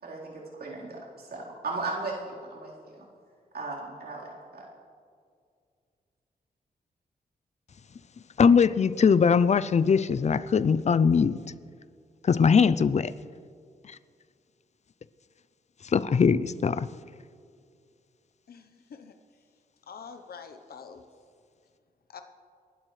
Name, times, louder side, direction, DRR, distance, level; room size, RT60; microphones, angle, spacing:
voice 1, 0.0-3.0 3.5-4.6, right 3 dB, 75° right, 4.1 m, -37 dB
voice 2, 8.4-11.4 12.2-13.1 15.8-16.9, left 6 dB, 45° left, 0.5 m, -21 dB
voice 3, 18.5-19.2 19.9-21.0 22.1-22.2, left 6 dB, 70° left, 0.9 m, -45 dB
28.0 x 12.0 x 3.3 m
cardioid pair, 90°, 16 cm